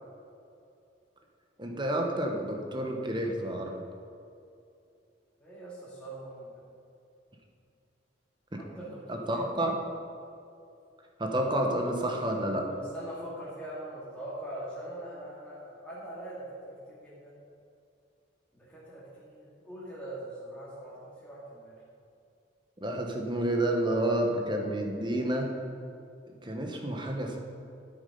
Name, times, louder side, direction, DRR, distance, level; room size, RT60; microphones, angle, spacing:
voice 1, 1.6-3.8 8.5-8.6 9.1-9.8 11.2-12.7 22.8-25.5 26.3-27.4, right 1 dB, 25° right, 2 dB, 1.2 m, -30 dB
voice 2, 5.4-6.6 8.6-9.6 12.7-17.4 18.5-21.7, right 1 dB, 5° left, -10 dB, 2.5 m, -42 dB
9.9 x 8.2 x 5.3 m, 2.5 s
head